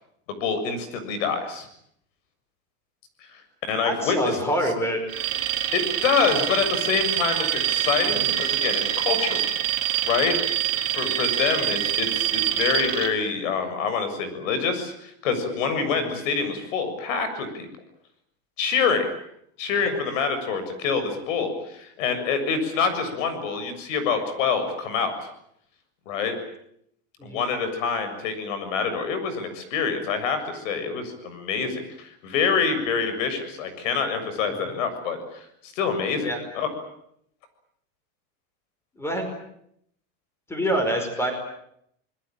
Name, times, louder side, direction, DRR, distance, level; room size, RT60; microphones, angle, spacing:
voice 1, 0.3-1.7 3.2-3.4 3.7-4.4 5.7-9.5 10.0-10.4 10.7-17.7 18.6-19.1 19.6-25.1 26.1-26.4 27.2-36.7, left 5 dB, 75° left, 10 dB, 7.2 m, -26 dB
voice 2, 3.8-5.0 8.0-8.3 16.0-16.1 27.2-27.4 36.2-36.4 39.0-39.3 40.5-41.3, equal, 5° left, 6 dB, 5.2 m, -26 dB
Alarm, 5.1-13.1, right 12 dB, 35° right, 4.0 m, -25 dB
26.0 x 21.5 x 9.1 m, 0.73 s
supercardioid pair, 175°, 39 cm